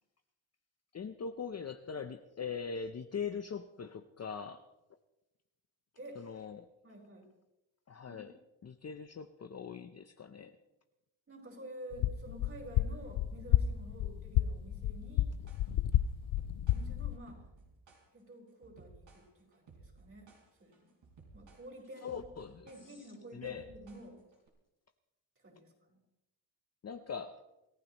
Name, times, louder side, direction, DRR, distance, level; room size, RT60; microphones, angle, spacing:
voice 1, 0.9-4.7 6.2-6.7 7.9-8.3 8.6-10.6 22.0-23.1 23.3-23.7 26.8-27.4, left 6 dB, 35° left, 7 dB, 0.7 m, -41 dB
voice 2, 6.8-7.3 8.1-8.3 11.3-15.3 16.7-17.4 18.1-20.3 20.6-20.9 21.3-22.2 22.6-24.2 25.4-26.0, right 1 dB, 25° right, -2 dB, 5.3 m, -50 dB
sound 1, 11.9-17.2, left 12 dB, 80° left, 0.7 m, -32 dB
sound 2, 14.9-24.5, right 3 dB, 70° right, 5.0 m, -58 dB
27.5 x 15.0 x 3.0 m, 0.96 s
cardioid pair, 125°, 47 cm